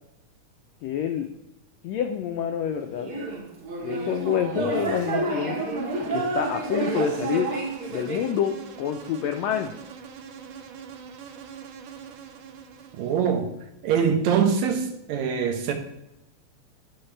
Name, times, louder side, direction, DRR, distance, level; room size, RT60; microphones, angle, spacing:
voice 1, 0.8-1.3 1.8-3.1 3.8-7.5 7.9-9.7, left 9 dB, 85° left, 6 dB, 1.5 m, -28 dB
sound 1, 3.0-8.3, right 3 dB, 45° right, 2.4 m, -29 dB
Insect, 5.2-13.5, right 7 dB, 90° right, 2.3 m, -43 dB
voice 2, 13.0-13.5 13.8-15.7, right 7 dB, 75° right, 5 dB, 2.0 m, -23 dB
10.0 x 6.4 x 3.2 m, 0.89 s
omnidirectional pair, 3.5 m